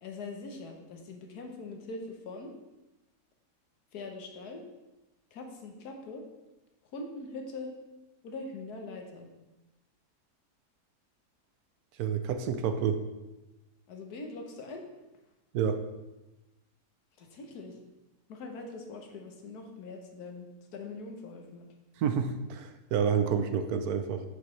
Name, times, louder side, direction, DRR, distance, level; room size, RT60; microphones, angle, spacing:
voice 1, 0.0-2.5 3.9-4.6 5.3-6.2 6.9-7.7 8.2-9.3 13.9-14.8 17.2-17.7 18.3-21.7, left 3 dB, 75° left, 3 dB, 1.5 m, -42 dB
voice 2, 12.0-13.0 15.5-15.8 22.0-24.2, right 7 dB, 70° right, 8 dB, 1.1 m, -29 dB
7.5 x 6.5 x 3.2 m, 1.0 s
omnidirectional pair, 1.7 m